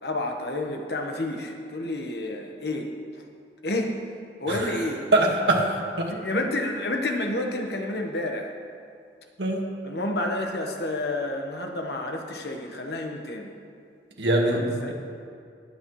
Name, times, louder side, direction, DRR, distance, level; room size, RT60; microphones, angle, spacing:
voice 1, 0.0-2.9 3.6-3.9 4.4-5.1 6.1-8.5 9.8-13.5 14.4-14.9, left 1 dB, 65° left, 3 dB, 1.2 m, -30 dB
voice 2, 5.1-5.6 6.0-6.1 9.4-9.6 14.2-14.9, right 2 dB, 75° right, 0 dB, 1.7 m, -22 dB
21.0 x 8.6 x 3.2 m, 2.4 s
head